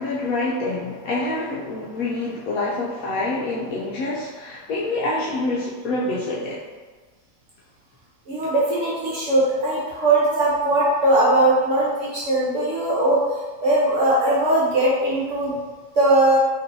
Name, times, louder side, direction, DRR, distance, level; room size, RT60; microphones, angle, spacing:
voice 1, 0.0-6.6, left 2 dB, 70° left, -5 dB, 0.8 m, -26 dB
voice 2, 8.3-13.2 13.6-15.6 15.9-16.4, right 1 dB, 55° right, -6 dB, 1.0 m, -19 dB
4.3 x 3.0 x 2.7 m, 1.3 s
omnidirectional pair, 1.9 m